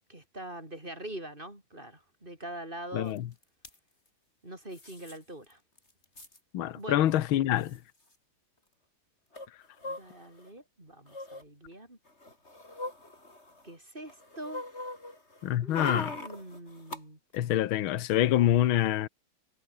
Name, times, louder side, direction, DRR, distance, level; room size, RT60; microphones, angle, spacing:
voice 1, 0.1-3.2 4.4-5.6 6.8-7.1 9.8-12.0 13.6-14.6 15.6-17.2, right 1 dB, 20° right, 6.5 m, -43 dB
voice 2, 2.9-3.3 6.5-7.8 15.4-16.1 17.3-19.1, left 12 dB, 75° left, 1.8 m, -26 dB
sound 1, 3.2-3.3 3.4-3.7 4.7-5.2 5.5-5.6 5.8-6.4 7.2-7.3 7.6-7.8 9.3-10.5 11.1-11.4 12.1-13.7 14.1-17.0 17.3-17.4, left 2 dB, 30° left, 5.6 m, -40 dB
omnidirectional pair, 2.3 m